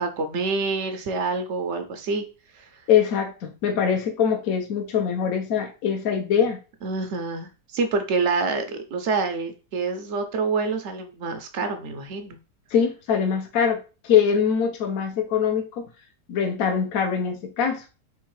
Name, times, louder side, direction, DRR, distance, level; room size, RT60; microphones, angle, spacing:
voice 1, 0.0-2.2 2.6-2.7 6.8-12.4, right 4 dB, 60° right, 7 dB, 0.8 m, -27 dB
voice 2, 2.9-6.6 12.7-15.8 16.3-17.8, left 7 dB, 60° left, 5 dB, 1.2 m, -23 dB
3.6 x 3.2 x 4.6 m, 0.33 s
omnidirectional pair, 1.8 m